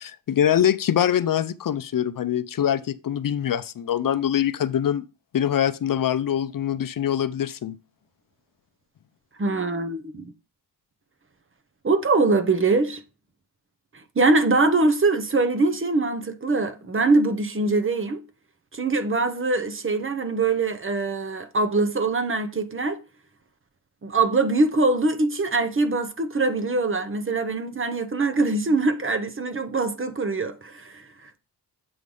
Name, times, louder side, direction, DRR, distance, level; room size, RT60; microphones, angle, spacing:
voice 1, 0.0-5.0 5.3-7.8, left 10 dB, 55° left, 0.5 m, -24 dB
voice 2, 9.4-10.3 11.8-13.0 13.9-18.2 18.7-23.0 24.0-31.4, right 3 dB, 30° right, 0.8 m, -23 dB
7.8 x 3.2 x 5.4 m
wide cardioid pair, 95°, 41 cm